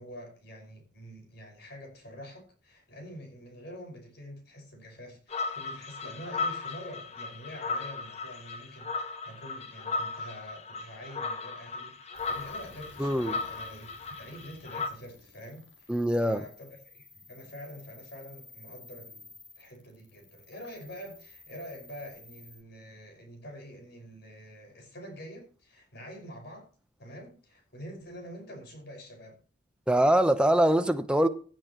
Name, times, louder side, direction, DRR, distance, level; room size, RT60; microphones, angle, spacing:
voice 1, 0.0-15.9 16.2-26.7 27.0-29.4, equal, 55° left, 5.7 m, -46 dB
sound 1, 5.3-14.9, left 4 dB, 35° left, 1.3 m, -36 dB
sound 2, 12.1-22.6, left 3 dB, 75° left, 5.2 m, -54 dB
voice 2, 13.0-13.4 15.9-16.4 29.9-31.3, right 1 dB, 5° right, 0.9 m, -23 dB
17.0 x 8.9 x 3.1 m
head